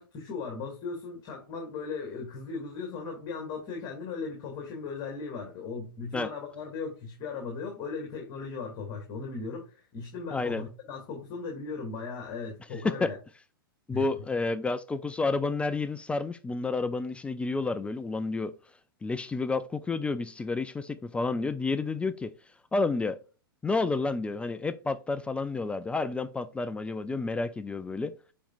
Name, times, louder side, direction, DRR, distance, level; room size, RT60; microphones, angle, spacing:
voice 1, 0.0-13.1 13.9-14.1, left 4 dB, 35° left, 2.4 m, -37 dB
voice 2, 10.3-10.6 12.8-13.1 13.9-18.5 19.0-22.3 22.7-23.2 23.6-28.1, left 3 dB, 10° left, 0.4 m, -30 dB
9.9 x 4.2 x 2.5 m
hypercardioid pair, 110°, 12 cm